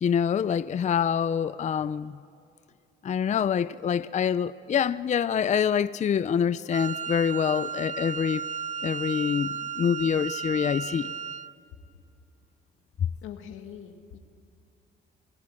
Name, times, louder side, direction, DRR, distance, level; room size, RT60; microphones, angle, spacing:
voice 1, 0.0-2.1 3.0-8.4 8.8-11.1, left 7 dB, 35° left, 0.5 m, -26 dB
Wind instrument woodwind instrument, 6.7-11.5, right 6 dB, 40° right, 0.6 m, -34 dB
voice 2, 13.2-14.2, left 9 dB, 90° left, 1.9 m, -42 dB
27.5 x 19.0 x 8.7 m
cardioid pair, 90°, 20 cm